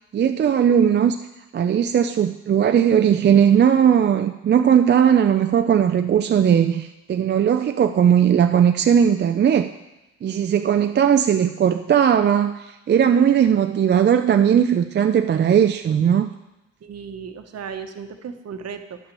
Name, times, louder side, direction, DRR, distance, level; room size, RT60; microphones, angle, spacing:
voice 1, 0.1-1.2 1.5-9.7 10.2-16.3, right 8 dB, 35° right, 6 dB, 0.4 m, -18 dB
voice 2, 16.8-19.0, right 6 dB, 55° right, 7 dB, 1.1 m, -35 dB
10.0 x 5.8 x 6.8 m, 0.99 s
cardioid pair, 90°, 30 cm